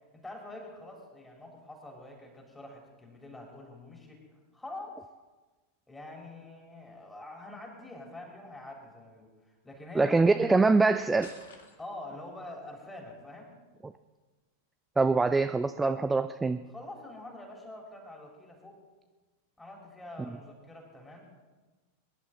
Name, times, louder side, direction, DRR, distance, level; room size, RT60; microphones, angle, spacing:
voice 1, 0.1-4.2 4.5-5.0 5.9-9.3 9.6-10.4 11.8-13.5 16.7-18.8 19.6-21.2, left 1 dB, 10° left, 0 dB, 3.7 m, -45 dB
voice 2, 10.0-11.3 13.8-13.9 15.0-16.6, right 3 dB, 10° right, 10 dB, 0.4 m, -24 dB
sound 1, 11.2-12.2, left 4 dB, 65° left, 1.9 m, -51 dB
23.0 x 11.0 x 3.9 m, 1.3 s
figure-of-eight pair, 90°, 0 cm